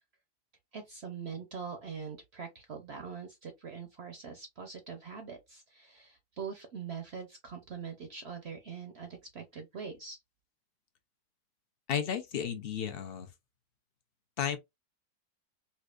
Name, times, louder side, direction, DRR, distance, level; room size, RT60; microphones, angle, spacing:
voice 1, 0.7-10.2, right 6 dB, 60° right, 0.7 m, -43 dB
voice 2, 11.9-13.3 14.4-14.6, left 8 dB, 65° left, 0.5 m, -33 dB
4.3 x 2.5 x 2.4 m
omnidirectional pair, 1.7 m